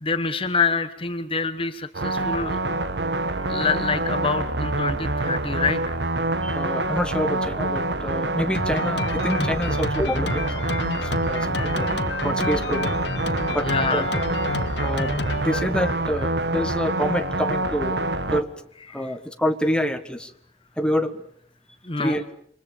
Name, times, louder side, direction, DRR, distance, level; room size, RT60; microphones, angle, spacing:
voice 1, 0.0-2.6 3.5-5.9 11.6-11.8 13.6-14.1 18.9-19.0 21.8-22.2, left 4 dB, 30° left, 10 dB, 1.2 m, -26 dB
sound 1, 1.9-18.4, right 2 dB, 70° right, 1.4 m, -26 dB
voice 2, 6.4-10.7 11.0-12.9 13.5-14.2 14.7-15.1 15.4-18.0 18.3-18.5 18.9-20.3 20.8-21.2 22.0-22.2, equal, 5° left, 7 dB, 1.7 m, -27 dB
Drum kit, 8.5-16.3, left 3 dB, 80° left, 1.7 m, -31 dB
28.0 x 24.0 x 7.2 m, 0.62 s
head